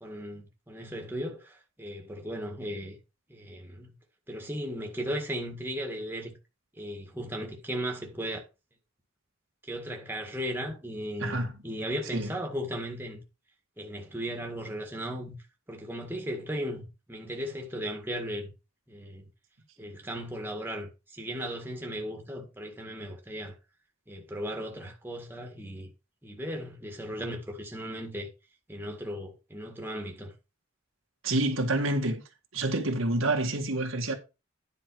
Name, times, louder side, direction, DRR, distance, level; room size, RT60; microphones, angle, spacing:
voice 1, 0.0-3.0 3.3-3.9 4.3-6.4 6.8-8.4 9.7-13.2 13.8-15.4 15.7-18.5 18.9-19.3 19.8-23.6 24.1-25.9 26.2-28.3 28.7-30.3, equal, 10° right, 1.8 m, -36 dB
voice 2, 11.2-11.5 12.1-12.3 31.2-32.2 32.5-34.1, right 2 dB, 70° right, 1.9 m, -28 dB
10.0 x 5.4 x 4.7 m
head